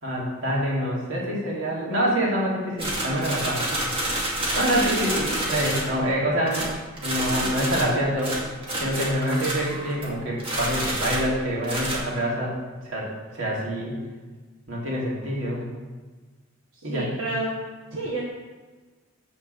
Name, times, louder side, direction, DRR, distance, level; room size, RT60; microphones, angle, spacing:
voice 1, 0.0-3.6 4.5-6.7 7.0-8.4 8.8-12.5 12.8-13.1 13.3-14.0 14.7-15.6 16.8-17.1, equal, 70° right, -4 dB, 2.8 m, -26 dB
sound 1, 2.8-6.1 6.5-10.1 10.4-12.0, right 1 dB, 25° right, 2.1 m, -28 dB
voice 2, 4.5-5.0 16.8-17.6 17.9-18.2, right 1 dB, 90° right, -5 dB, 1.7 m, -30 dB
10.5 x 4.4 x 6.8 m, 1.3 s
head